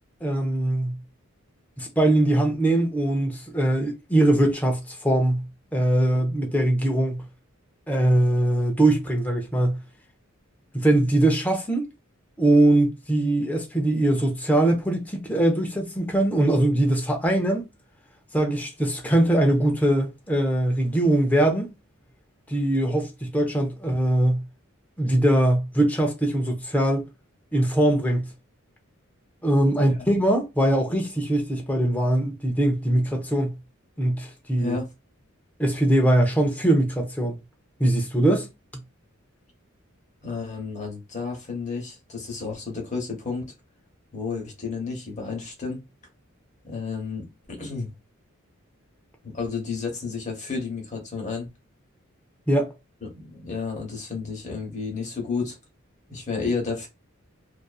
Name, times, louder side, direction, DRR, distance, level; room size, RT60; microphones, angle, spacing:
voice 1, 0.2-1.0 1.8-5.4 5.7-7.2 7.9-9.8 10.7-11.8 12.4-17.7 18.3-21.7 22.5-24.4 25.0-27.1 27.5-28.3 29.4-33.5 34.0-34.8 35.6-37.4 37.8-38.5 52.5-52.7, right 1 dB, 5° left, 0.5 m, -22 dB
voice 2, 40.2-43.5 44.1-45.8 46.6-47.9 49.2-51.5 53.0-55.6 56.1-56.9, left 4 dB, 35° left, 1.0 m, -31 dB
2.7 x 2.4 x 2.3 m
head